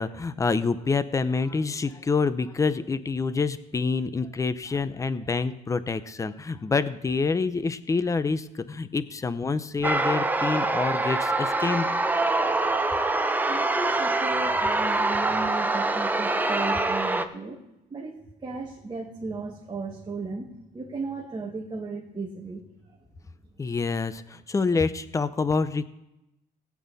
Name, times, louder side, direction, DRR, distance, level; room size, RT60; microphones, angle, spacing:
voice 1, 0.0-11.9 23.6-25.9, left 4 dB, 20° left, 14 dB, 0.7 m, -27 dB
sound 1, 9.8-17.2, right 2 dB, 10° right, 0.8 m, -25 dB
voice 2, 13.5-17.6 17.9-22.7, right 3 dB, 25° right, -2 dB, 2.0 m, -35 dB
19.0 x 8.5 x 4.1 m, 0.89 s
cardioid pair, 110°, 17 cm